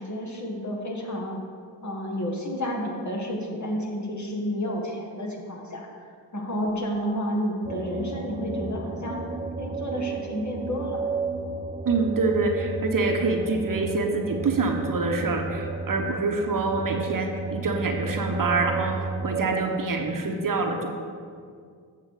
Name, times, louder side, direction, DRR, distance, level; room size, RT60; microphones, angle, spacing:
voice 1, 0.0-1.4 1.8-5.9 6.3-9.2 9.6-11.0, equal, 40° left, 0 dB, 1.9 m, -30 dB
sound 1, 7.6-19.6, right 3 dB, 15° right, 0.5 m, -33 dB
voice 2, 11.8-20.9, right 3 dB, 50° right, 3 dB, 1.2 m, -26 dB
8.3 x 6.6 x 4.9 m, 2.2 s
supercardioid pair, 45°, 44 cm